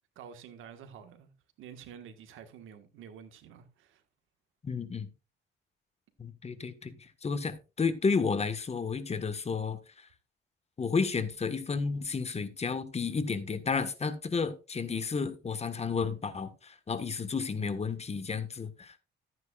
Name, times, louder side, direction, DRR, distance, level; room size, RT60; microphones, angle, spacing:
voice 1, 0.1-1.3 1.6-4.0, right 8 dB, 85° right, 1.6 m, -49 dB
voice 2, 4.6-5.1 6.2-10.1 10.8-19.0, left 5 dB, 30° left, 1.5 m, -32 dB
13.5 x 9.4 x 2.4 m
cardioid pair, 90°, 20 cm